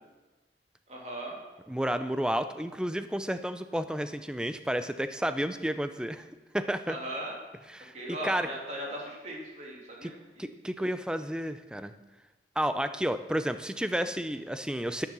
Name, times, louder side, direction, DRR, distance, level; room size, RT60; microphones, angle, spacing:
voice 1, 0.9-1.4 6.9-7.4 7.9-10.5, right 1 dB, 40° right, -2 dB, 2.7 m, -38 dB
voice 2, 1.7-6.2 6.5-7.0 7.7-8.5 10.0-10.1 10.4-11.9 12.6-15.1, equal, 5° right, 10 dB, 0.4 m, -31 dB
10.5 x 9.9 x 6.1 m, 1.2 s
head